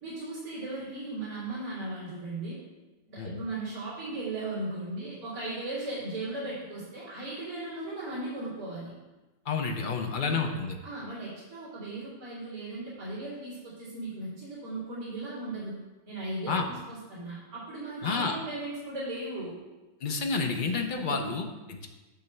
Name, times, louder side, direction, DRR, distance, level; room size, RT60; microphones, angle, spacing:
voice 1, 0.0-2.6 3.1-8.9 10.2-10.4 10.8-15.8 16.0-19.6 20.9-21.3, right 2 dB, 65° right, -10 dB, 3.2 m, -37 dB
voice 2, 9.5-10.8 16.5-16.7 18.0-18.4 20.0-21.9, left 4 dB, 60° left, 3 dB, 0.5 m, -30 dB
9.2 x 3.2 x 6.6 m, 1.1 s
omnidirectional pair, 1.8 m